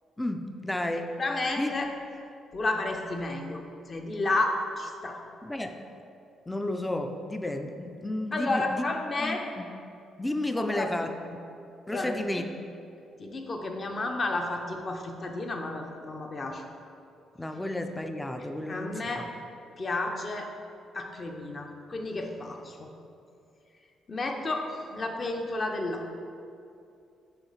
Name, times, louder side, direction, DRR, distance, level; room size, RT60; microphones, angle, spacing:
voice 1, 0.2-1.1 1.6-1.7 5.4-5.9 6.5-8.8 9.2-9.6 10.2-11.4 11.9-12.4 17.4-19.3, left 1 dB, 10° left, 7 dB, 0.4 m, -32 dB
voice 2, 1.2-1.9 2.5-5.2 8.3-9.5 10.6-10.9 11.9-12.4 13.2-16.6 18.7-19.3 19.8-20.5 20.9-22.9 24.1-26.1, left 2 dB, 40° left, 3 dB, 0.8 m, -31 dB
6.9 x 3.2 x 5.6 m, 2.5 s
cardioid pair, 90°, 0 cm